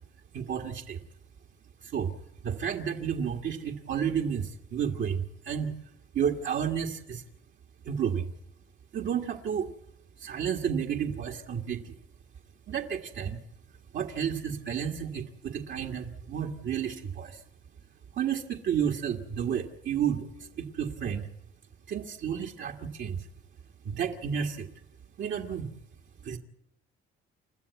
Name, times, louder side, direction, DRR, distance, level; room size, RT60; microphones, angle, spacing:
voice 1, 0.3-1.0 1.8-2.1 2.4-5.7 6.1-7.2 7.9-8.3 8.9-9.7 10.2-12.0 12.7-13.4 13.9-17.4 18.1-21.3 21.9-23.3 23.9-24.7 25.2-25.7 26.2-26.4, right 8 dB, 70° right, 1 dB, 1.9 m, -31 dB
29.5 x 13.0 x 8.2 m, 0.81 s
cardioid pair, 90°, 20 cm